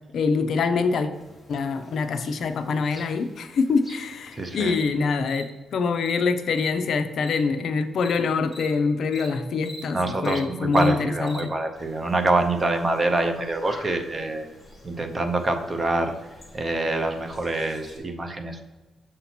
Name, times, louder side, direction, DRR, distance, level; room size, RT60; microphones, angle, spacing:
voice 1, 0.1-1.1 1.5-5.5 5.7-11.5, left 4 dB, 55° left, 8 dB, 0.5 m, -25 dB
sound 1, 1.1-4.9 5.3-5.4 6.0-6.2 6.5-6.7 7.2-7.4 8.0-8.2 8.5-8.7 9.1-9.3 9.6-9.8 10.2-10.4 10.7-10.9 11.3-11.4 11.8-18.0, equal, 5° left, 1.3 m, -46 dB
voice 2, 4.3-4.8 9.9-14.5 14.8-16.1 16.5-18.6, right 2 dB, 25° right, 6 dB, 0.6 m, -25 dB
6.5 x 2.8 x 5.7 m, 1.2 s
cardioid pair, 140°, 0 cm